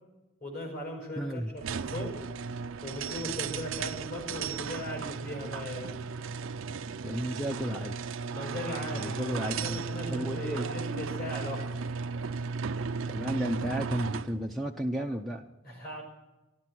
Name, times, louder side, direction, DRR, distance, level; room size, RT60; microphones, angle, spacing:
voice 1, 0.4-2.2 2.8-6.0 8.3-11.8 15.6-16.0, left 1 dB, 45° left, 1 dB, 5.1 m, -38 dB
voice 2, 1.2-1.5 7.0-8.0 8.9-9.8 10.1-10.7 13.1-15.5, equal, ahead, 2 dB, 0.5 m, -33 dB
sound 1, 1.6-14.4, right 5 dB, 80° right, 0.5 m, -35 dB
14.0 x 12.0 x 6.0 m, 1.0 s
head